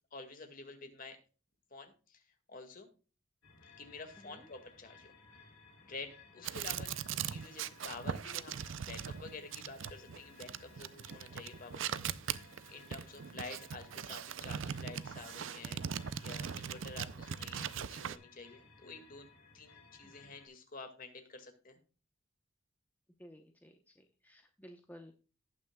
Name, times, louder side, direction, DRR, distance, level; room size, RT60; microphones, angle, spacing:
voice 1, 0.1-1.2 1.7-2.2 2.5-2.9 3.7-5.1 5.8-12.0 12.7-15.8 16.2-19.3 19.5-21.8, left 3 dB, 45° left, 6 dB, 1.9 m, -49 dB
sound 1, 3.4-20.5, left 4 dB, 75° left, 2.6 m, -60 dB
voice 2, 4.2-4.5 20.0-20.1 23.2-25.2, equal, 10° left, 4 dB, 0.8 m, -55 dB
sound 2, 6.4-18.2, right 8 dB, 65° right, 0.5 m, -40 dB
18.0 x 6.1 x 2.2 m, 0.36 s
head